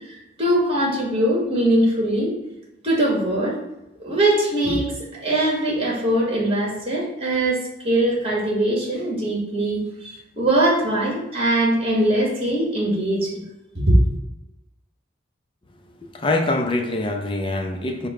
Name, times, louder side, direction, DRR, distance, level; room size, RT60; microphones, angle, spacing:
voice 1, 0.1-2.3 2.8-3.5 4.0-4.9 5.2-13.4 13.7-14.0, right 1 dB, 30° right, 1.5 m, -21 dB
voice 2, 16.1-18.1, left 2 dB, 25° left, 0.5 m, -24 dB
4.9 x 2.2 x 4.8 m
head